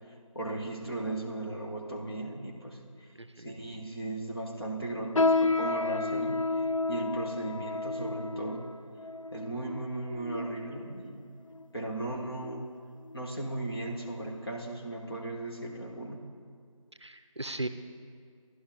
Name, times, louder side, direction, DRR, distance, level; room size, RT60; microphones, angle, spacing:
voice 1, 0.3-3.1 3.4-6.4 6.9-8.7 9.3-11.2 11.7-12.7 13.1-16.2, right 2 dB, 45° left, -2 dB, 1.3 m, -36 dB
voice 2, 3.2-3.5 17.0-17.7, right 2 dB, 55° right, 10 dB, 0.5 m, -37 dB
sound 1, 5.2-10.8 11.5-11.6 12.4-12.7 13.1-13.2 13.9-14.0, left 3 dB, 70° left, 0.4 m, -31 dB
12.5 x 11.0 x 2.9 m, 2.1 s
figure-of-eight pair, 180°, 18 cm